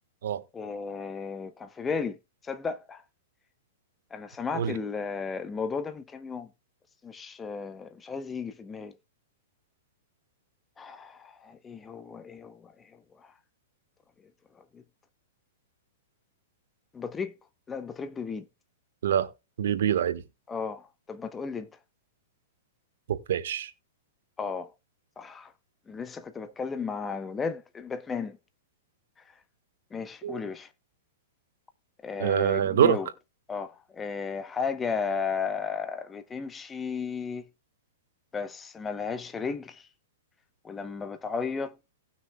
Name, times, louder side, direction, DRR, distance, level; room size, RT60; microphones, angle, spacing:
voice 1, 0.5-2.2 2.4-3.0 4.1-6.5 7.0-8.9 10.8-13.3 14.7-14.8 16.9-17.4 17.7-18.5 20.5-21.7 24.4-24.7 25.2-25.5 25.9-28.4 29.9-30.7 32.0-33.1 33.5-37.5 38.3-39.9 40.6-41.8, left 5 dB, 15° left, 1.0 m, -34 dB
voice 2, 19.6-20.2 23.1-23.7 30.2-30.4 32.2-33.0, right 9 dB, 75° right, 1.4 m, -25 dB
18.0 x 6.3 x 2.3 m
hypercardioid pair, 140°, 0 cm